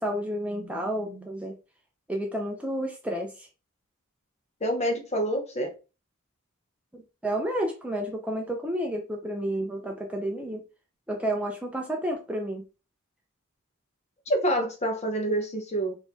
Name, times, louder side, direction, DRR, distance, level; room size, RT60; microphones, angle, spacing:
voice 1, 0.0-1.5 2.1-3.3 6.9-10.6 11.1-12.6, right 1 dB, 5° right, 0.5 m, -31 dB
voice 2, 4.6-5.7 14.3-16.0, right 1 dB, 30° left, 0.9 m, -27 dB
4.6 x 2.7 x 3.4 m
head